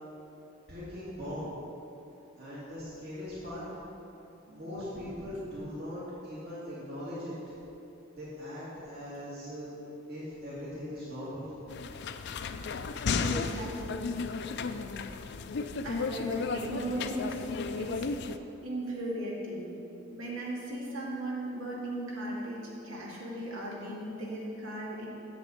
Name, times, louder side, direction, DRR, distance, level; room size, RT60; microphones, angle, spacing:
voice 1, 0.7-1.5 2.3-3.6 4.5-7.3 8.1-9.8 10.1-11.5, left 1 dB, 55° right, -10 dB, 2.7 m, -40 dB
sound 1, 11.7-18.4, left 4 dB, 60° left, 0.5 m, -34 dB
voice 2, 13.2-14.1 15.8-17.5 17.8-18.1 18.6-19.7 20.1-25.1, right 1 dB, 90° right, -4 dB, 2.3 m, -37 dB
7.9 x 7.0 x 7.5 m, 2.9 s
head